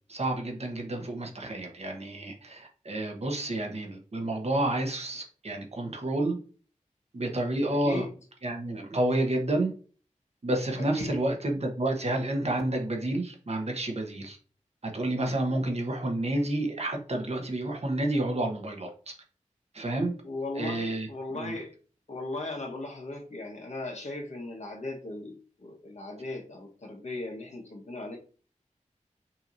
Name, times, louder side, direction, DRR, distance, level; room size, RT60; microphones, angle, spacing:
voice 1, 0.1-6.4 7.1-8.1 8.4-9.7 10.4-14.4 14.8-19.1 19.7-20.1 20.5-21.1 21.3-21.5, right 1 dB, 55° right, 2 dB, 1.1 m, -30 dB
voice 2, 7.7-8.1 10.8-11.2 20.2-21.8 22.1-28.2, left 2 dB, 60° left, 0 dB, 1.3 m, -37 dB
5.7 x 2.9 x 2.6 m, 0.39 s
wide cardioid pair, 80°, 13 cm